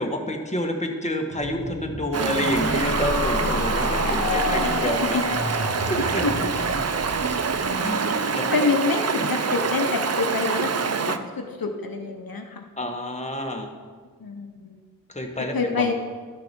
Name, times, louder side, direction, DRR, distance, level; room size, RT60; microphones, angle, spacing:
voice 1, 0.0-5.2 5.9-6.3 7.8-8.5 12.8-13.7 15.1-15.9, left 1 dB, 20° left, 2 dB, 1.3 m, -28 dB
sound 1, 1.3-9.9, right 1 dB, 65° right, 1.4 m, -36 dB
Stream, 2.1-11.2, right 5 dB, 45° right, 0.5 m, -26 dB
sound 2, 2.5-7.8 8.1-8.2, left 3 dB, 45° left, 1.7 m, -30 dB
voice 2, 3.4-3.8 4.0-4.9 6.2-6.4 8.5-12.6 14.2-14.8 15.4-15.9, left 4 dB, 80° left, 5 dB, 0.8 m, -27 dB
12.5 x 6.2 x 4.4 m, 1.5 s
wide cardioid pair, 45°, 35 cm